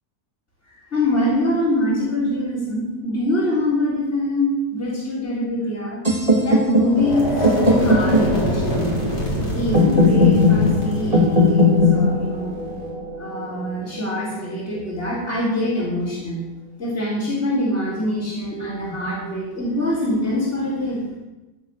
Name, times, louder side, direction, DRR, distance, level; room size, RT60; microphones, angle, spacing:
voice 1, 0.7-6.0 6.4-9.0 9.5-12.5 13.2-16.4 16.8-21.0, left 1 dB, 40° left, -9 dB, 4.4 m, -24 dB
sound 1, 6.0-14.0, left 2 dB, 20° right, 2.7 m, -19 dB
sound 2, 6.9-12.9, equal, 65° left, 4.6 m, -26 dB
15.0 x 8.3 x 6.7 m, 1.1 s
omnidirectional pair, 1.8 m